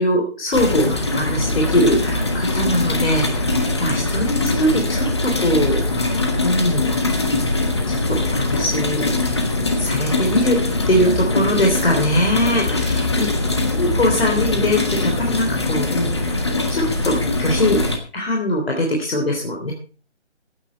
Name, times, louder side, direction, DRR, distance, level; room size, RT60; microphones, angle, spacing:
voice 1, 0.0-6.9 7.9-9.1 9.8-10.6 10.9-13.3 13.7-16.4 16.7-17.8 18.1-19.7, equal, 55° left, 0 dB, 3.5 m, -21 dB
sound 1, 0.5-18.0, left 2 dB, 25° left, 1.3 m, -22 dB
15.5 x 9.3 x 4.4 m, 0.38 s
figure-of-eight pair, 175°, 35 cm